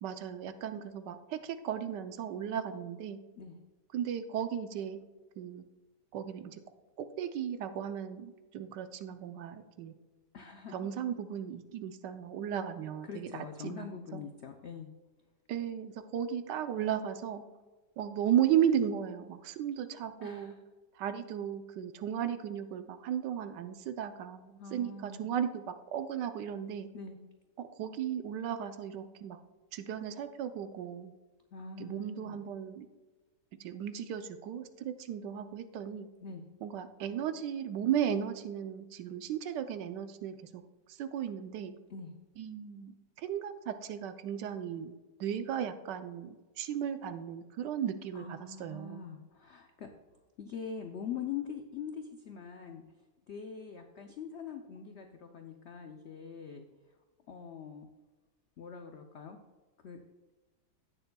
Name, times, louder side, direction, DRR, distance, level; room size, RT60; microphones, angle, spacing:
voice 1, 0.0-3.2 3.9-5.0 5.4-5.6 6.1-6.6 7.0-9.9 10.7-14.2 15.5-17.4 18.0-20.5 20.9-26.9 27.6-29.4 29.7-31.1 31.8-32.9 33.6-36.1 36.6-40.6 40.9-41.7 42.4-44.9 45.2-49.0, right 9 dB, 80° right, 9 dB, 1.2 m, -35 dB
voice 2, 10.3-10.9 13.1-14.9 20.2-20.6 24.6-25.3 26.9-27.2 31.5-32.4 36.2-36.4 41.9-42.1 48.1-49.9 50.4-52.8 53.3-56.7 57.3-57.9 58.6-59.4 59.8-60.0, left 6 dB, 80° left, 5 dB, 0.6 m, -43 dB
16.0 x 6.8 x 2.3 m, 1.2 s
omnidirectional pair, 1.9 m